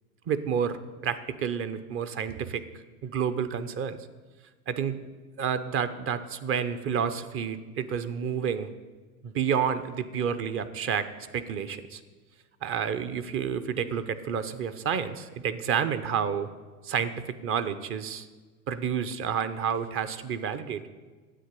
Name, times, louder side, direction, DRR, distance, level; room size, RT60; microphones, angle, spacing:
voice 1, 0.3-0.8 1.0-2.6 3.0-4.0 4.7-5.0 5.4-8.7 9.2-11.1 11.3-12.0 12.6-16.5 16.8-18.3 18.7-20.8, right 7 dB, 25° right, 11 dB, 0.7 m, -29 dB
10.0 x 7.9 x 8.3 m, 1.4 s
hypercardioid pair, 115°, 49 cm